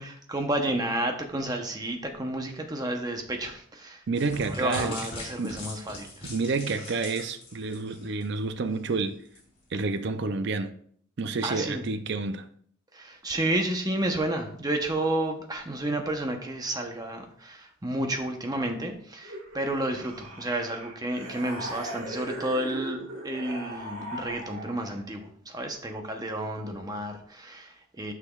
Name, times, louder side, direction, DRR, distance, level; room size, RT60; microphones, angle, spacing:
voice 1, 0.0-4.0 4.4-6.3 11.4-11.9 12.9-28.1, right 1 dB, 20° right, 0.8 m, -31 dB
voice 2, 4.1-5.0 5.4-5.7 6.2-9.2 9.7-10.7 11.2-12.5, right 3 dB, 55° right, 0.5 m, -29 dB
sound 1, 4.2-8.4 8.7-8.9 9.3-9.4, left 2 dB, 30° left, 2.3 m, -41 dB
sound 2, 19.2-25.1, right 1 dB, 80° right, 1.6 m, -39 dB
9.8 x 5.9 x 2.4 m
head